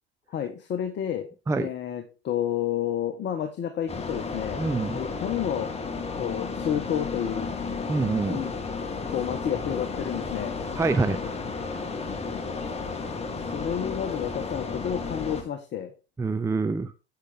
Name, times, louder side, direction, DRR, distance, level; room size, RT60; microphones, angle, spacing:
voice 1, 0.3-1.3 1.5-4.6 4.9-5.7 6.2-7.5 8.3-8.5 9.1-10.6 13.5-15.9, left 9 dB, 35° left, 6 dB, 1.3 m, -30 dB
sound 1, 3.9-15.4, left 4 dB, 20° left, 1.7 m, -33 dB
voice 2, 4.6-5.0 7.9-8.4 10.7-11.2 16.2-16.9, right 3 dB, 10° right, 11 dB, 0.6 m, -25 dB
8.2 x 8.1 x 3.7 m, 0.31 s
figure-of-eight pair, 75°, 31 cm